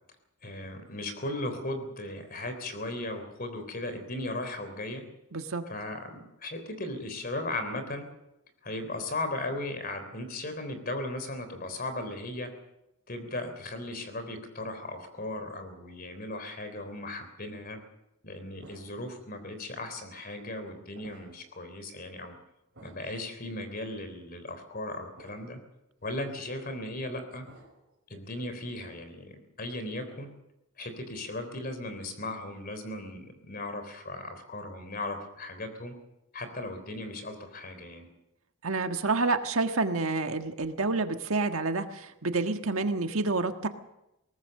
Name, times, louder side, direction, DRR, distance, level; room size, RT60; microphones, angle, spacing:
voice 1, 0.4-5.0 5.7-8.1 8.6-12.5 13.1-17.8 18.2-22.4 22.8-25.6 26.0-27.5 28.1-30.3 30.8-35.9 36.3-38.1, left 2 dB, 40° left, 8 dB, 3.5 m, -37 dB
voice 2, 5.3-5.6 38.6-43.7, right 3 dB, 70° right, 6 dB, 1.5 m, -28 dB
sound 1, 18.6-19.2 19.9-20.0 20.9-21.5 21.9-22.1 22.7-23.2 23.9-24.0 25.2-25.6 26.0-26.7 27.4-27.9, right 2 dB, 55° right, 5.4 m, -55 dB
22.5 x 18.5 x 6.6 m, 0.89 s
head